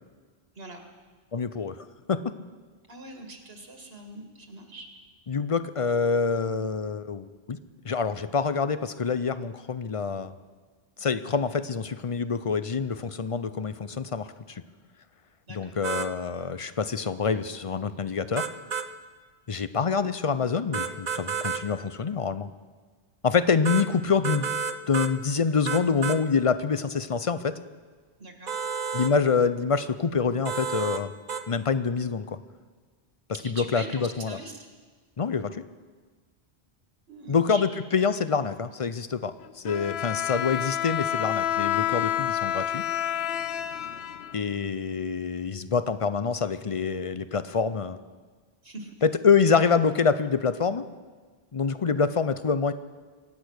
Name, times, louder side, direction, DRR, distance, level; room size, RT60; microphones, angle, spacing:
voice 1, 1.3-2.3 5.3-7.6 7.8-10.3 11.0-14.6 15.5-18.5 19.5-22.5 23.2-24.5 24.9-27.6 28.9-31.1 31.5-32.4 33.4-34.4 35.2-35.6 37.3-42.8 44.3-48.0 49.0-50.8 51.5-52.7, left 5 dB, 40° left, 13 dB, 0.6 m, -26 dB
voice 2, 2.9-4.9 15.5-15.7 28.2-28.6 33.4-34.7 37.1-37.6 40.2-40.3 48.6-48.9, right 2 dB, 75° right, 4 dB, 2.0 m, -42 dB
sound 1, 15.8-16.1 18.4-18.9 20.7-21.6 23.7-23.9 24.2-25.1 25.7-26.2 28.5-29.1 30.5-31.0 31.3-31.4, right 6 dB, 45° right, 0.7 m, -30 dB
Bowed string instrument, 39.6-44.7, left 11 dB, 80° left, 0.9 m, -29 dB
24.0 x 8.6 x 6.4 m, 1.4 s
omnidirectional pair, 1.1 m